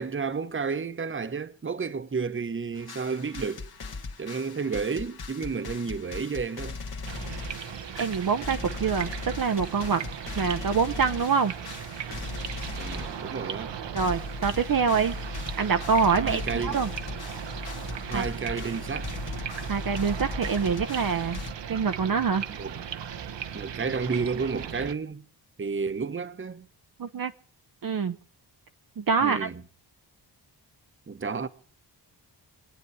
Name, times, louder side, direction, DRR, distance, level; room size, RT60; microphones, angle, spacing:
voice 1, 0.0-3.7 4.2-6.8 12.7-13.8 16.2-16.8 18.0-19.1 22.6-22.8 23.5-25.2 25.6-26.7 29.2-29.6 31.1-31.5, right 5 dB, 30° right, 1.0 m, -31 dB
sound 1, 2.7-13.4 13.7-13.8 14.0-21.5, left 4 dB, 55° left, 1.7 m, -38 dB
sound 2, 7.0-24.9, right 8 dB, 75° right, 1.1 m, -37 dB
voice 2, 8.0-9.1 9.4-10.0 10.4-11.5 13.9-15.1 15.6-16.9 18.1-18.2 19.7-21.4 21.7-22.4 27.0-27.3 27.8-28.2 29.0-29.5, right 5 dB, 50° right, 0.8 m, -25 dB
26.5 x 9.2 x 4.7 m
wide cardioid pair, 120°, 43 cm